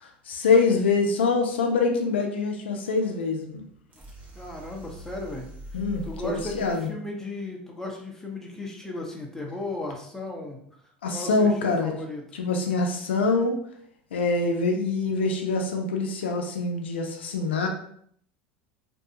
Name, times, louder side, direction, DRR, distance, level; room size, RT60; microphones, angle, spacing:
voice 1, 0.0-3.6 5.7-6.9 11.0-11.9 12.3-13.6 14.1-17.7, left 4 dB, 85° left, 3 dB, 0.4 m, -25 dB
sound 1, 3.9-6.9, right 1 dB, 25° right, 0.9 m, -43 dB
voice 2, 4.3-5.5 6.0-10.6 11.1-12.2, left 2 dB, 5° left, 0 dB, 0.7 m, -35 dB
2.6 x 2.3 x 2.7 m, 0.64 s
hypercardioid pair, 85°, 6 cm